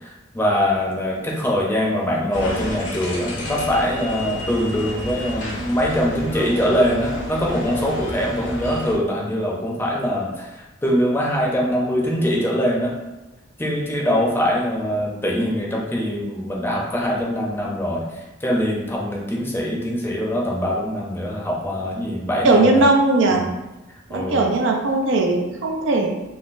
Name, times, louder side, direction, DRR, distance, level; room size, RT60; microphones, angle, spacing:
voice 1, 0.0-12.9 13.6-18.1 18.4-22.8 24.1-24.5, equal, 10° left, -3 dB, 0.5 m, -23 dB
sound 1, 2.3-9.0, equal, 75° left, 0.8 m, -31 dB
voice 2, 22.4-23.4 24.1-26.1, right 2 dB, 85° right, 1 dB, 0.5 m, -18 dB
3.7 x 2.0 x 2.5 m, 1.0 s
head